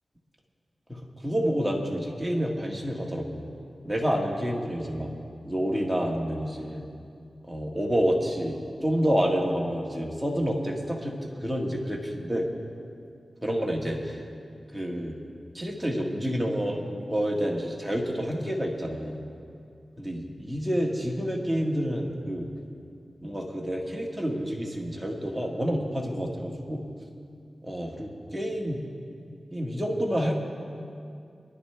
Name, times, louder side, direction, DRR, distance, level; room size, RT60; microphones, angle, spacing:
voice 1, 0.9-3.5 3.8-5.1 5.4-6.8 7.4-12.5 13.4-14.2 14.7-15.2 15.5-19.2 20.0-22.5 23.2-26.8 27.6-28.8 29.5-30.3, equal, 5° right, -2 dB, 1.7 m, -28 dB
23.5 x 11.5 x 3.4 m, 2.4 s
wide cardioid pair, 125°, 0 cm